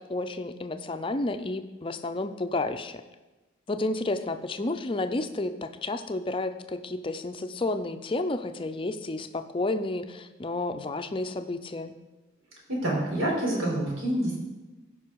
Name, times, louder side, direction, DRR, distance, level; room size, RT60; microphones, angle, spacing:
voice 1, 0.0-3.0 3.7-11.9, left 2 dB, 25° left, 8 dB, 0.5 m, -31 dB
voice 2, 12.7-14.4, right 1 dB, 80° right, -3 dB, 4.1 m, -27 dB
15.5 x 5.4 x 4.7 m, 1.1 s
head